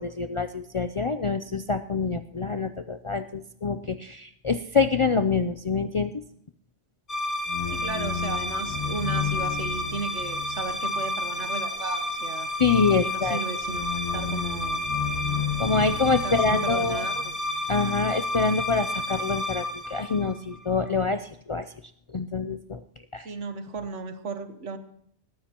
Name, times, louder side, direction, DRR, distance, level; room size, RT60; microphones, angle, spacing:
voice 1, 0.0-6.1 12.6-13.4 15.6-17.1 17.7-21.7 22.1-22.8 23.1-23.3, left 4 dB, 50° left, 9 dB, 0.4 m, -26 dB
sound 1, 7.1-20.7, left 2 dB, 30° left, 1.1 m, -30 dB
voice 2, 7.7-12.5 12.9-14.8 16.0-17.3 23.2-24.8, right 4 dB, 90° right, 9 dB, 1.5 m, -35 dB
20.5 x 13.5 x 2.9 m, 0.66 s
omnidirectional pair, 1.2 m